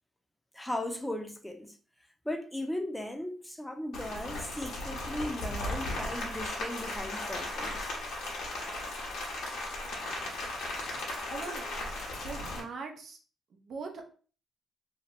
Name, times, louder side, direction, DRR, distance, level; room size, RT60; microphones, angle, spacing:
voice 1, 0.5-1.8 2.3-7.9, left 1 dB, 5° left, 0.6 m, -37 dB
Rain, 3.9-12.6, left 2 dB, 80° left, 1.1 m, -36 dB
voice 2, 11.3-11.6 12.2-13.2 13.5-14.0, right 4 dB, 60° right, 0.6 m, -41 dB
2.9 x 2.4 x 2.9 m
cardioid pair, 90°, 0 cm